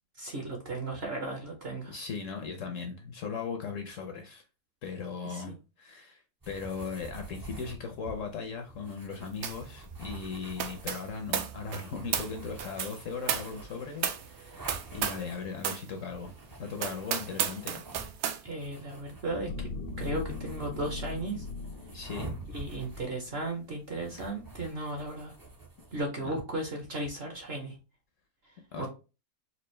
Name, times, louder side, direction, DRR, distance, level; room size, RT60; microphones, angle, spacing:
voice 1, 0.2-1.9 5.2-5.5 18.4-19.7 20.0-21.4 22.5-25.3 25.9-27.7 28.8-28.9, right 2 dB, 50° right, 0.9 m, -35 dB
voice 2, 1.9-4.4 4.8-16.3 16.6-17.8 21.9-22.3 26.2-26.3 28.7-28.9, left 5 dB, 65° left, 0.9 m, -38 dB
sound 1, 6.4-26.0, right 3 dB, 30° right, 0.3 m, -47 dB
sound 2, 9.4-9.7 10.0-15.3 15.6-15.9 16.3-16.4 16.8-18.4, right 8 dB, 75° right, 0.6 m, -34 dB
sound 3, 19.3-23.8 24.3-24.4, left 4 dB, 85° left, 1.2 m, -40 dB
4.3 x 2.4 x 3.1 m
omnidirectional pair, 1.8 m